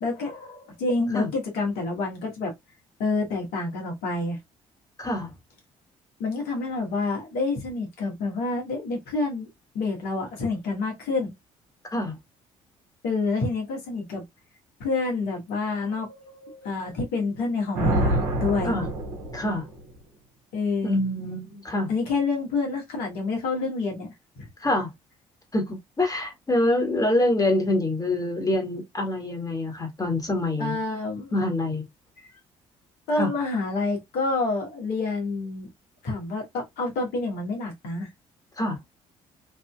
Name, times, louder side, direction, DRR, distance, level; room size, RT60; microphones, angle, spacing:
voice 1, 0.0-2.5 3.0-4.4 6.2-9.5 9.7-11.3 13.0-14.2 14.8-18.8 20.5-21.0 21.9-24.5 30.6-31.4 33.1-35.7 36.0-38.1, left 3 dB, 70° left, 1.4 m, -28 dB
voice 2, 5.0-5.3 11.9-12.2 18.6-18.9 19.3-19.7 20.8-21.9 24.6-24.9 25.5-30.8 31.3-31.8 33.2-33.3 38.6-38.8, left 1 dB, 20° left, 1.5 m, -25 dB
Thunder, 17.7-20.0, right 1 dB, 70° right, 1.2 m, -26 dB
3.4 x 2.7 x 2.3 m
hypercardioid pair, 50°, 16 cm